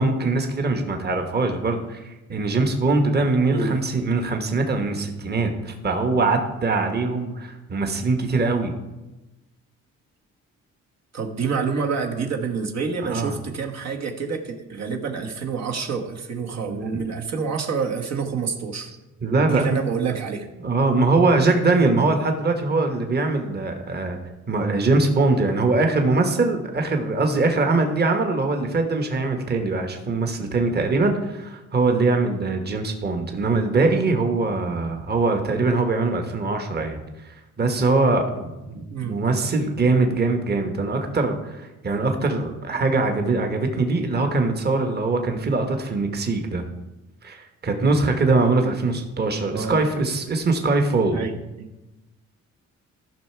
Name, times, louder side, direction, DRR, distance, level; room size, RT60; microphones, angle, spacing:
voice 1, 0.0-8.7 13.0-13.3 16.5-17.0 19.2-19.8 20.6-24.2 24.5-46.6 47.2-51.2, right 3 dB, 35° right, 5 dB, 1.3 m, -22 dB
voice 2, 3.5-3.8 11.1-18.9 19.5-20.5 38.9-39.3 49.5-49.8 51.1-51.3 51.6-51.7, right 5 dB, 60° right, 2 dB, 1.4 m, -27 dB
14.0 x 5.8 x 4.6 m, 1.0 s
cardioid pair, 90°, 30 cm